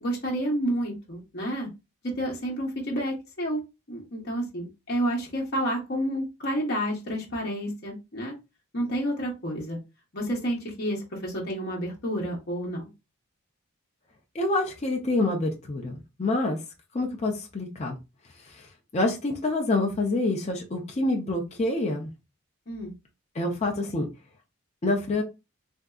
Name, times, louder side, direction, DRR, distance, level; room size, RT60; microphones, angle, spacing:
voice 1, 0.0-1.7 2.1-3.6 3.9-8.3 8.7-9.8 10.1-12.9 22.7-22.9, equal, 45° left, -2 dB, 0.9 m, -30 dB
voice 2, 14.3-16.6 16.9-18.0 18.4-22.1 23.3-24.1 24.8-25.2, left 2 dB, 30° left, 2 dB, 0.5 m, -27 dB
3.5 x 2.6 x 2.3 m, 0.25 s
head